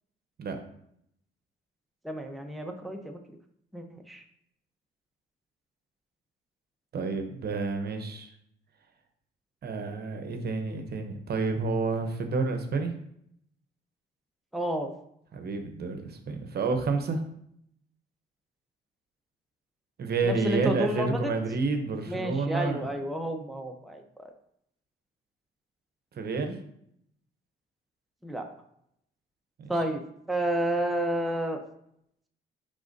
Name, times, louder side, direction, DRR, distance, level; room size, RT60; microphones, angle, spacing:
voice 1, 2.0-3.4 3.7-4.2 14.5-14.9 20.2-21.1 22.1-24.3 28.2-28.5 29.7-30.0 30.3-31.6, right 1 dB, ahead, 3 dB, 0.7 m, -30 dB
voice 2, 6.9-8.3 9.6-12.9 15.3-17.2 20.0-22.9 26.2-26.6 29.6-29.7, right 4 dB, 55° right, 6 dB, 0.9 m, -29 dB
10.5 x 3.5 x 2.7 m, 0.72 s
cardioid pair, 90°, 20 cm